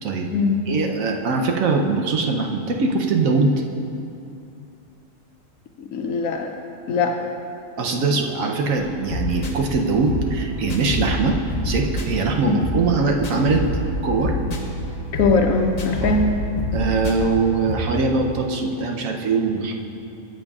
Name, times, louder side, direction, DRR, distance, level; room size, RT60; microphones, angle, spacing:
voice 1, 0.7-3.5 7.8-11.4 11.6-13.6 14.0-14.4 16.0-16.2 16.7-19.7, right 4 dB, 80° right, 2 dB, 1.2 m, -22 dB
voice 2, 5.8-6.5 6.9-7.2 12.5-12.6 15.1-16.3, left 4 dB, 80° left, 4 dB, 1.0 m, -21 dB
sound 1, 8.8-17.8, left 1 dB, 35° left, 0.7 m, -28 dB
14.0 x 7.6 x 2.4 m, 2.6 s
omnidirectional pair, 1.4 m